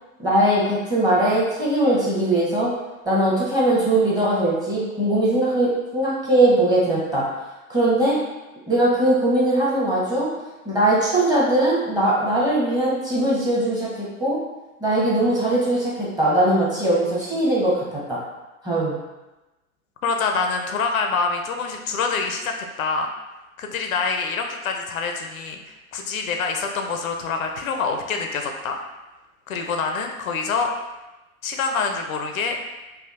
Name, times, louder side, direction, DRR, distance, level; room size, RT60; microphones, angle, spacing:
voice 1, 0.2-2.7 3.1-7.3 7.7-8.2 8.7-10.3 10.6-14.4 14.8-18.2 18.6-19.0, right 1 dB, 10° right, -7 dB, 0.9 m, -20 dB
voice 2, 20.0-23.1 23.6-25.6 25.9-28.8 29.5-30.7 31.4-32.6, left 4 dB, 75° left, 3 dB, 0.5 m, -26 dB
3.4 x 2.4 x 2.4 m, 1.1 s
figure-of-eight pair, 95°, 43 cm